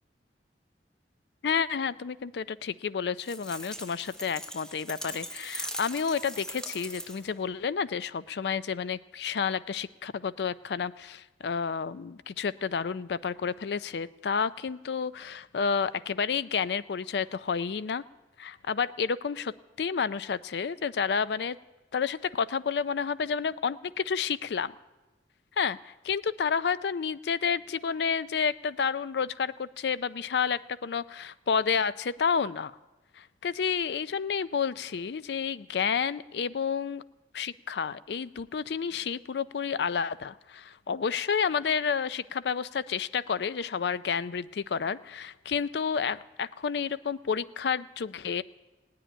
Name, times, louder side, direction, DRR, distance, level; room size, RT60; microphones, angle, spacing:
voice 1, 1.4-18.0 18.4-21.6 21.9-24.8 25.6-32.7 33.2-37.0 37.3-48.4, left 6 dB, 70° left, 16 dB, 0.4 m, -30 dB
sound 1, 3.2-7.4, equal, 5° left, 0.7 m, -40 dB
17.5 x 7.7 x 10.0 m, 1.1 s
head